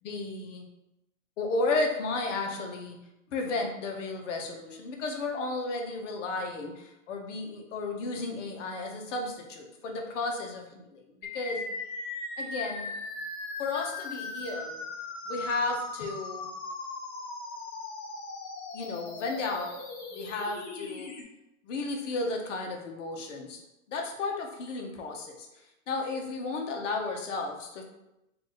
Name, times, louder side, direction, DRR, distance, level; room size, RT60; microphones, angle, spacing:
voice 1, 0.0-0.7 1.4-3.0 3.3-10.6 11.1-11.7 12.4-12.9 13.6-14.8 15.3-16.5 18.7-19.7 20.1-21.1 21.6-23.6 23.9-25.5 25.9-27.8, left 3 dB, 65° left, 2 dB, 1.0 m, -33 dB
sound 1, 11.2-21.2, left 3 dB, 30° left, 0.5 m, -39 dB
3.5 x 2.5 x 3.9 m, 0.91 s
hypercardioid pair, 135°, 40 cm